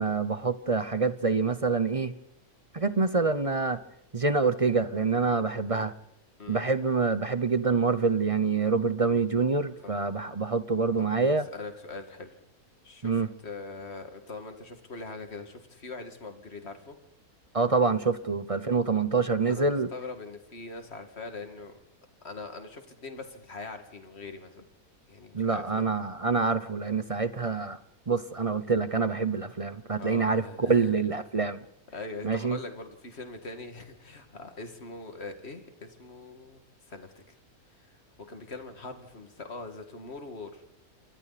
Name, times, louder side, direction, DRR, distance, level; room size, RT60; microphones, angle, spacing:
voice 1, 0.0-2.1 2.7-3.8 4.1-5.9 6.5-11.5 13.0-13.3 17.5-19.9 25.3-27.8 28.1-31.6 32.2-32.6, right 4 dB, 30° right, 13 dB, 0.7 m, -26 dB
voice 2, 9.8-10.2 11.0-12.4 12.8-17.0 19.4-21.8 22.2-24.7 25.1-25.8 30.0-31.0 31.9-36.6 36.9-37.4 37.8-38.0 38.3-40.6, left 3 dB, 45° left, 6 dB, 2.5 m, -42 dB
28.0 x 25.0 x 4.2 m, 0.83 s
omnidirectional pair, 1.5 m